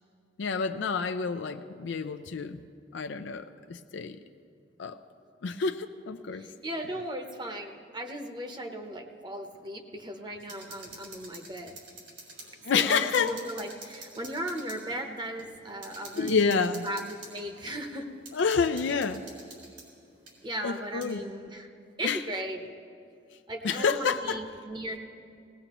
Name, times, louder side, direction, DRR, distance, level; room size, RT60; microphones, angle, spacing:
voice 1, 0.4-2.6 2.9-4.2 4.8-5.0 5.4-6.5 12.6-13.4 16.2-16.9 18.3-19.2 20.6-21.2 22.0-22.2 23.6-24.4, left 5 dB, 80° left, 8 dB, 0.5 m, -28 dB
voice 2, 6.3-11.7 12.7-18.1 20.4-21.7 22.0-22.7 23.5-25.0, right 1 dB, 25° right, 4 dB, 0.9 m, -37 dB
sound 1, 10.4-12.5 12.8-12.9 13.1-14.8 15.4-15.5 15.8-17.4 18.3-19.9 20.3-20.4 21.0-21.1, right 3 dB, 90° right, 4.0 m, -47 dB
19.0 x 18.0 x 3.0 m, 2.5 s
head